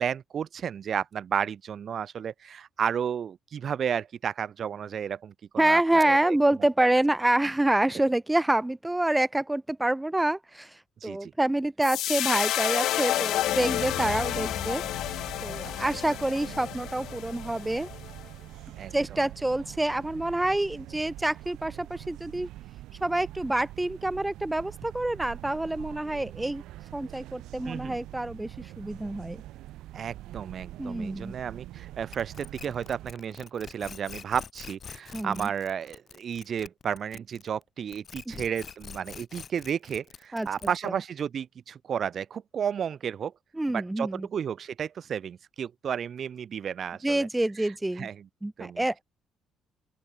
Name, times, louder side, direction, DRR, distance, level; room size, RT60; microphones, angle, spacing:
voice 1, 0.0-6.4 11.0-11.3 15.6-15.7 18.8-19.2 27.7-28.0 29.9-43.3 43.7-47.3 48.0-48.3 48.6-48.8, right 8 dB, 50° right, 0.7 m, -32 dB
voice 2, 5.6-14.8 15.4-17.9 18.9-22.5 23.0-26.6 26.9-29.4 30.8-31.3 35.1-35.5 38.3-38.4 40.3-40.5 40.8-41.0 43.5-44.3 47.0-48.1 48.4-49.0, right 1 dB, 10° right, 0.5 m, -27 dB
sound 1, 11.8-18.2, left 13 dB, 75° left, 0.7 m, -30 dB
sound 2, 13.8-33.1, right 15 dB, 85° right, 1.7 m, -44 dB
sound 3, 32.1-37.6 37.9-41.0, left 6 dB, 40° left, 2.1 m, -45 dB
open air
cardioid pair, 115°, 0 cm